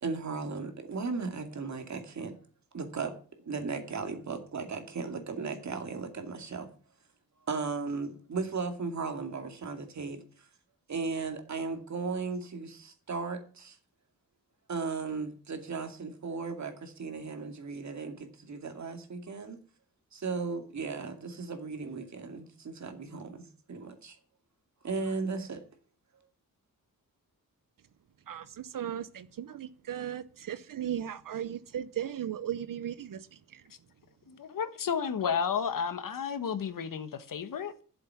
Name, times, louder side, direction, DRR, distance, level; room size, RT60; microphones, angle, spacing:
voice 1, 0.0-2.4 2.7-3.1 3.4-6.7 7.5-10.5 10.9-13.8 14.7-19.6 20.1-24.2 24.8-25.6, right 4 dB, 55° right, 2.4 m, -36 dB
voice 2, 28.3-33.3 33.5-33.6, right 10 dB, 70° right, 0.8 m, -36 dB
voice 3, 34.3-37.8, left 7 dB, 70° left, 1.3 m, -32 dB
11.5 x 7.7 x 7.2 m
wide cardioid pair, 155°, 34 cm